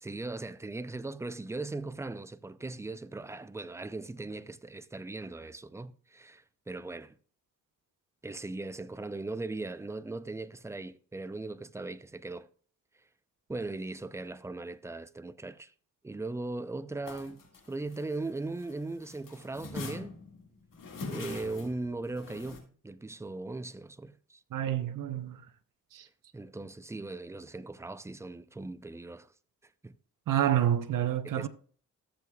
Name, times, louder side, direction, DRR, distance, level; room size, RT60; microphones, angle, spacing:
voice 1, 0.0-7.1 8.2-12.5 13.5-15.7 16.0-17.4 17.7-20.2 21.1-24.4 26.3-29.3 29.8-30.0 31.2-31.5, right 2 dB, 10° right, 0.4 m, -39 dB
sound 1, 17.0-18.7 19.0-22.6, left 3 dB, 85° left, 2.0 m, -43 dB
voice 2, 24.5-25.4 25.9-26.1 30.3-31.5, right 11 dB, 80° right, 0.8 m, -28 dB
14.0 x 7.6 x 2.3 m
cardioid pair, 90°, 32 cm